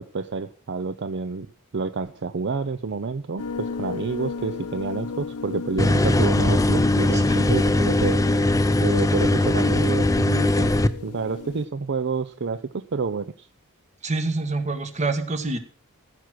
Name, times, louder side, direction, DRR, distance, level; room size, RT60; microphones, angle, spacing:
voice 1, 0.0-1.5 1.7-8.2 8.8-10.7 11.0-13.5, right 4 dB, 50° right, 11 dB, 0.5 m, -29 dB
sound 1, 3.4-11.7, left 5 dB, 90° left, 0.8 m, -35 dB
sound 2, 5.8-10.9, left 1 dB, 15° left, 0.6 m, -20 dB
voice 2, 14.0-15.6, right 3 dB, 30° right, 9 dB, 1.4 m, -26 dB
15.5 x 6.0 x 6.2 m, 0.42 s
head